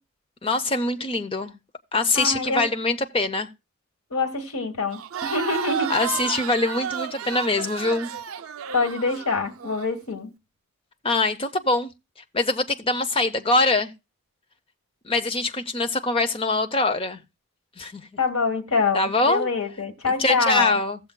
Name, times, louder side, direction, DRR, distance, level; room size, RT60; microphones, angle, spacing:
voice 1, 0.4-1.6 1.9-3.5 5.9-8.1 11.0-11.9 12.3-13.9 15.0-17.2 17.8-18.1 18.9-19.5 20.2-21.0, left 2 dB, 25° left, 0.7 m, -23 dB
voice 2, 2.1-2.7 4.1-5.9 8.7-10.3 18.2-20.8, left 4 dB, 75° left, 1.5 m, -25 dB
Crowd, 4.9-9.9, right 7 dB, 75° right, 0.5 m, -32 dB
17.5 x 7.0 x 2.3 m
head